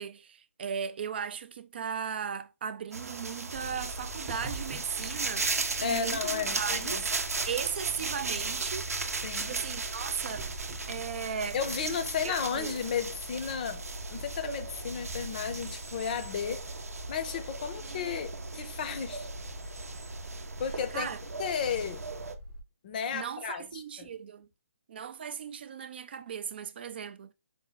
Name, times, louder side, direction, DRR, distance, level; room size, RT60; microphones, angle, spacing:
voice 1, 0.0-5.5 5.8-7.1 7.4-8.9 9.3-10.5 10.9-11.6 12.2-12.7 20.9-21.2 23.1-24.5 24.9-27.3, right 7 dB, 45° right, 0.4 m, -37 dB
sound 1, 2.9-22.3, right 3 dB, 80° right, 0.7 m, -37 dB
sound 2, 3.5-22.6, equal, 25° right, 0.8 m, -44 dB
voice 2, 5.8-7.0 9.2-9.5 11.5-13.8 14.1-16.7 17.1-19.3 20.6-21.1 21.4-22.1 22.8-24.1, left 7 dB, 35° left, 0.6 m, -33 dB
5.1 x 2.2 x 3.9 m
hypercardioid pair, 155°, 8 cm